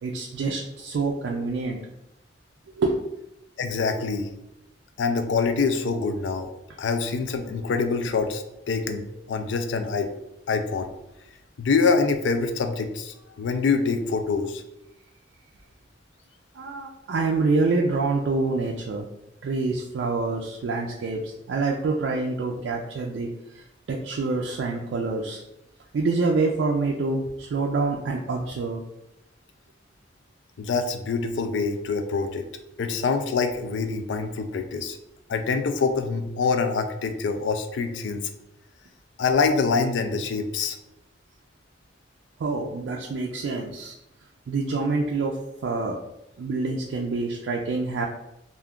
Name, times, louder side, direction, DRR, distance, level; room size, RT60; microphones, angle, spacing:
voice 1, 0.0-1.8 2.8-3.0 16.5-19.0 19.4-25.4 25.9-28.8 42.4-44.0 44.5-45.4 45.6-46.0 46.4-48.1, right 3 dB, 75° right, -1 dB, 0.3 m, -26 dB
voice 2, 3.6-4.3 5.0-6.5 6.8-10.1 10.5-10.9 11.6-14.6 30.6-32.5 32.8-35.0 35.3-38.2 39.2-40.8, left 4 dB, 85° left, 7 dB, 0.4 m, -25 dB
2.5 x 2.3 x 3.5 m, 0.87 s
head